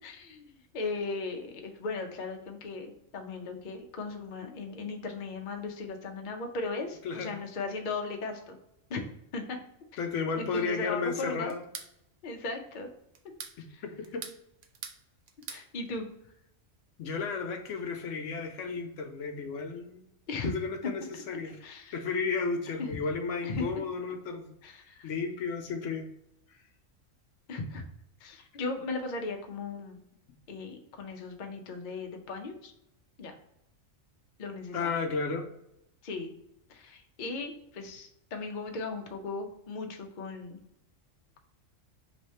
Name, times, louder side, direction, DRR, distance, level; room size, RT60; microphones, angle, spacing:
voice 1, 0.0-8.6 8.9-9.0 9.3-9.6 10.4-11.6 12.2-12.9 13.7-13.8 15.5-16.1 20.3-20.5 20.8-20.9 21.6-22.0 23.4-23.6 24.6-25.1 27.5-27.8 28.2-30.0 30.5-32.7 33.2-33.4 34.4-34.9 36.0-36.3 36.7-40.6, left 3 dB, 50° left, 3 dB, 0.7 m, -37 dB
voice 2, 7.0-7.4 10.0-11.6 13.6-14.2 17.0-20.0 20.4-21.6 21.9-24.8 25.0-26.1 34.7-35.4, left 4 dB, 75° left, 5 dB, 0.9 m, -33 dB
sound 1, 11.5-11.9 13.1-13.6 14.0-15.0 15.3-15.7, right 7 dB, 65° right, 0.8 m, -42 dB
3.3 x 3.1 x 4.1 m, 0.80 s
omnidirectional pair, 1.4 m